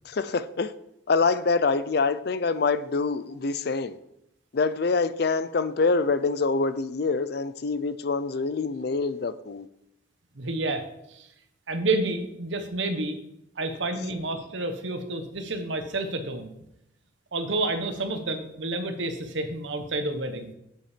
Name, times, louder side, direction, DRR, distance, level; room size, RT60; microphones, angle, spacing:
voice 1, 0.0-0.7 1.1-4.0 4.5-9.7, left 4 dB, 55° left, 0.5 m, -25 dB
voice 2, 10.3-11.3 11.7-13.2 13.6-16.5 17.3-20.5, right 2 dB, 75° right, 1.1 m, -29 dB
7.7 x 7.2 x 5.1 m
head